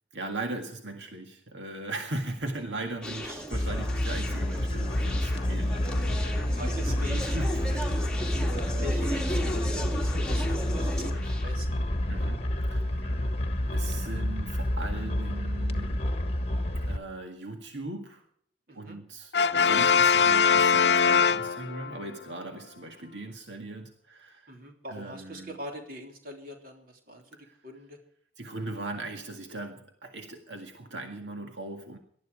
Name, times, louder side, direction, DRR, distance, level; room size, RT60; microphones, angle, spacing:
voice 1, 0.1-5.8 7.2-8.0 12.1-12.4 12.7-13.1 13.7-16.0 16.9-18.2 18.7-24.6 24.9-25.6 27.3-27.6 28.4-32.0, right 2 dB, 80° right, 4 dB, 1.9 m, -39 dB
Conversation, 3.0-11.4, equal, 5° left, 2.0 m, -36 dB
voice 2, 3.2-3.7 5.7-6.2 6.5-7.8 8.5-11.8 18.7-19.0 24.5-28.0, equal, 50° right, 2 dB, 3.4 m, -43 dB
sound 1, 3.5-17.0, left 1 dB, 35° left, 1.4 m, -29 dB
Brass instrument, 19.3-22.0, left 6 dB, 65° left, 0.5 m, -22 dB
19.0 x 12.5 x 5.0 m, 0.62 s
head